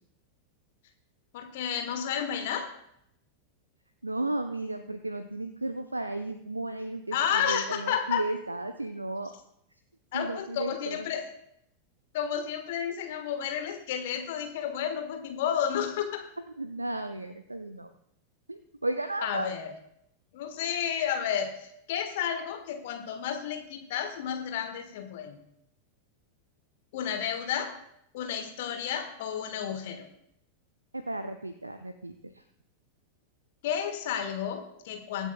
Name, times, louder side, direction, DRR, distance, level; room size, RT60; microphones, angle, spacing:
voice 1, 1.3-2.7 7.1-8.2 10.1-11.2 12.1-16.2 19.2-19.7 20.3-25.4 26.9-27.7 28.1-30.0 33.6-35.3, left 8 dB, 55° left, 6 dB, 1.5 m, -31 dB
voice 2, 4.0-9.3 10.1-11.1 16.6-17.9 18.5-19.5 30.9-32.4, right 2 dB, 85° right, 9 dB, 0.5 m, -34 dB
23.0 x 8.1 x 2.3 m, 0.74 s
figure-of-eight pair, 90°, 0 cm